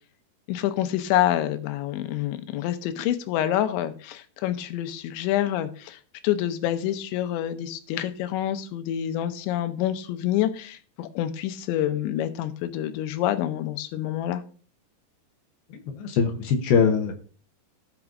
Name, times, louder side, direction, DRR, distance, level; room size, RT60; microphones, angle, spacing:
voice 1, 0.5-14.4, left 12 dB, 90° left, 9 dB, 3.0 m, -27 dB
voice 2, 15.9-17.2, left 6 dB, 70° left, 5 dB, 2.5 m, -22 dB
17.0 x 6.0 x 2.6 m, 0.41 s
omnidirectional pair, 5.2 m